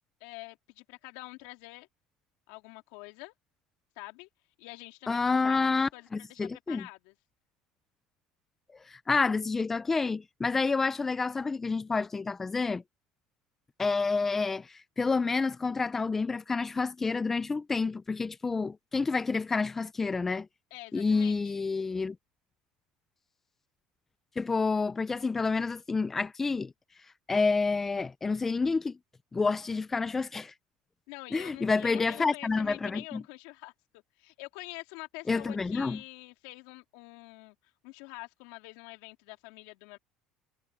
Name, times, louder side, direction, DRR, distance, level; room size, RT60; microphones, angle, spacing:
voice 1, 0.2-1.9 2.5-3.3 3.9-4.3 4.6-7.1 20.7-21.5 31.1-37.5 37.8-40.0, left 23 dB, 85° left, 3.2 m, -46 dB
voice 2, 5.1-6.9 8.9-12.8 13.8-20.5 20.9-22.2 24.4-26.7 27.3-29.0 29.3-30.5 31.3-33.2 35.3-36.0, left 4 dB, 15° left, 0.5 m, -29 dB
cardioid pair, 150°, 2 cm